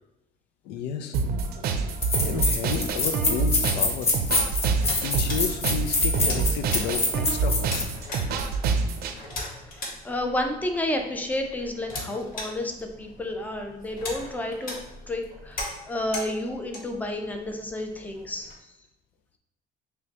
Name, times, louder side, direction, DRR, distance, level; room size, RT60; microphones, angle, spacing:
voice 1, 0.6-1.2 1.6-2.0 2.2-4.5 5.0-8.3, left 7 dB, 90° left, 8 dB, 0.4 m, -33 dB
sound 1, 1.1-9.1, right 4 dB, 65° right, 0.5 m, -27 dB
sound 2, 1.4-1.5 2.0-7.9, left 2 dB, 40° left, 0.9 m, -25 dB
sound 3, 4.3-18.5, left 1 dB, 55° left, 1.3 m, -40 dB
voice 2, 9.7-14.8 15.1-18.5, left 1 dB, 10° left, 4 dB, 0.5 m, -31 dB
5.9 x 2.2 x 2.9 m, 0.93 s
cardioid pair, 110°, 17 cm